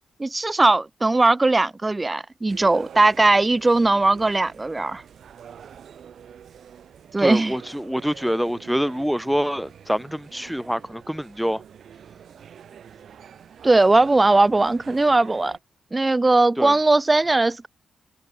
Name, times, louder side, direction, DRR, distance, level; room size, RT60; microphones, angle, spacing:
voice 1, 0.2-5.0 7.1-7.6 13.6-15.6 15.9-17.7, right 2 dB, 25° right, 0.8 m, -19 dB
sound 1, 2.5-15.6, right 8 dB, 70° right, 6.4 m, -46 dB
voice 2, 7.2-11.6 16.6-16.7, equal, ahead, 5.2 m, -26 dB
cardioid pair, 70°, 0 cm